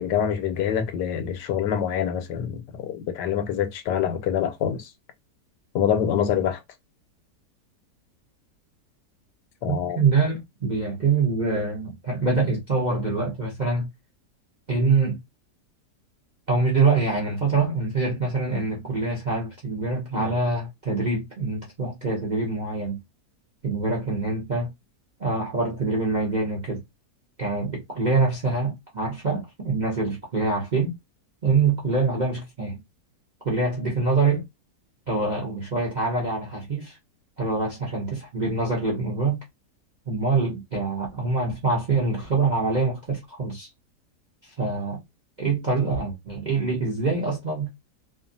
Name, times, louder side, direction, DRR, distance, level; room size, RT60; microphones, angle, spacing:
voice 1, 0.0-4.9 5.7-6.6 9.6-10.0, left 9 dB, 90° left, 1.2 m, -25 dB
voice 2, 9.7-13.9 14.7-15.2 16.5-23.0 23.6-24.7 25.2-26.8 27.4-30.9 31.4-32.8 33.4-34.4 35.1-37.0 37.4-39.4 40.1-43.7 44.4-45.0 45.4-47.7, right 3 dB, 45° right, 0.5 m, -25 dB
2.8 x 2.4 x 2.5 m
omnidirectional pair, 1.8 m